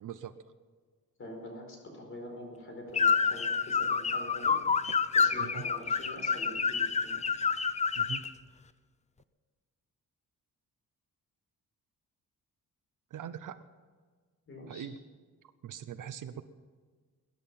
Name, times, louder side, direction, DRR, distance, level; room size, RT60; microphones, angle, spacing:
voice 1, 0.0-0.3 5.4-5.7 8.0-8.2 13.1-13.6 14.7-15.0 15.6-16.4, right 9 dB, 60° right, 12 dB, 0.8 m, -41 dB
voice 2, 1.2-4.5 5.1-7.2 14.5-14.9, left 1 dB, 35° left, 1 dB, 4.6 m, -45 dB
sound 1, 2.9-8.3, left 5 dB, 20° left, 0.4 m, -28 dB
21.5 x 10.5 x 5.7 m, 1.5 s
wide cardioid pair, 180°, 36 cm